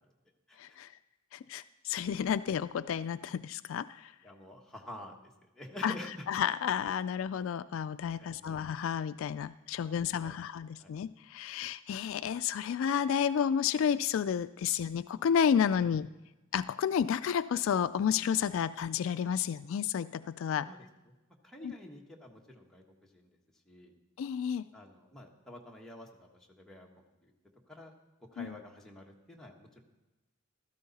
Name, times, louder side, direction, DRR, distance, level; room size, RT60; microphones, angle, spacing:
voice 1, 0.6-0.9 1.3-4.1 5.8-5.9 6.3-16.1 16.5-20.7 21.6-21.7 24.2-24.6 28.4-28.5, left 8 dB, 65° left, 14 dB, 0.3 m, -31 dB
voice 2, 4.2-6.3 8.1-8.6 9.8-10.0 10.2-10.3 10.8-10.9 15.8-16.0 20.6-21.1 21.4-23.4 23.7-23.9 24.7-27.3 27.7-27.9 28.3-29.8, left 1 dB, 5° left, -1 dB, 1.4 m, -49 dB
14.0 x 13.0 x 4.1 m, 1.1 s
head